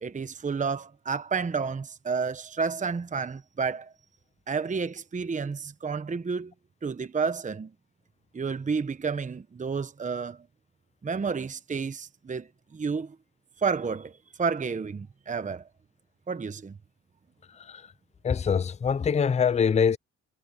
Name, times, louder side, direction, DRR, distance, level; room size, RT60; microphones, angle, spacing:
voice 1, 0.0-3.9 4.5-6.5 6.8-7.7 8.3-10.4 11.0-13.2 13.6-15.6 16.3-16.7, right 5 dB, 25° right, 1.1 m, -30 dB
voice 2, 18.2-20.0, left 6 dB, 20° left, 0.5 m, -24 dB
cardioid pair, 90°, 30 cm